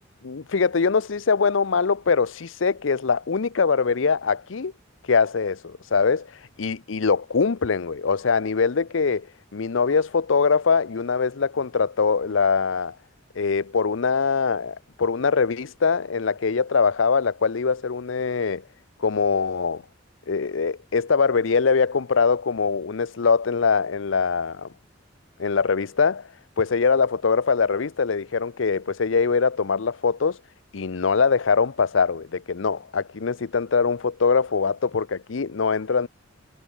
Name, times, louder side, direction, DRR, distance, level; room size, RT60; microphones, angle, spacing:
voice 1, 0.2-4.7 5.1-6.3 6.6-9.3 9.5-12.9 13.3-18.6 19.0-19.8 20.3-24.7 25.4-26.3 26.6-30.4 30.7-36.1, left 5 dB, 70° left, 0.7 m, -22 dB
head